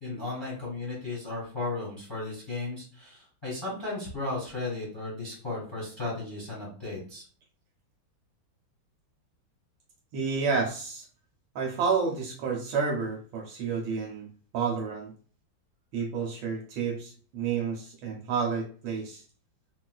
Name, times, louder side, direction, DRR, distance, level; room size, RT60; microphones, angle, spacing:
voice 1, 0.0-7.2, left 3 dB, 15° left, -6 dB, 0.9 m, -35 dB
voice 2, 10.1-11.1 11.5-14.3 14.5-15.1 15.9-19.2, right 5 dB, 80° right, 0 dB, 1.3 m, -30 dB
3.9 x 2.3 x 2.2 m, 0.43 s
omnidirectional pair, 2.1 m